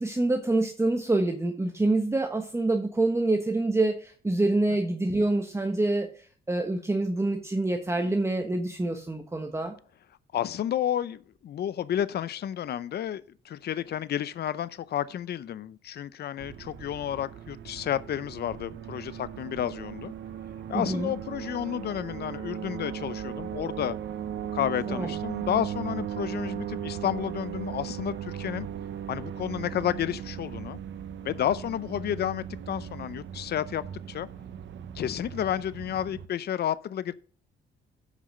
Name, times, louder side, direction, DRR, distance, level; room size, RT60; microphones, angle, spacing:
voice 1, 0.0-9.7 20.7-21.1 24.9-25.1, right 2 dB, 15° right, 1.2 m, -26 dB
voice 2, 10.3-20.1 20.7-23.9 24.5-28.7 29.1-30.8 31.2-34.3 34.9-37.1, left 10 dB, 55° left, 0.6 m, -31 dB
sound 1, 16.4-36.3, right 9 dB, 70° right, 0.9 m, -37 dB
8.3 x 5.7 x 6.4 m
cardioid pair, 90°, 20 cm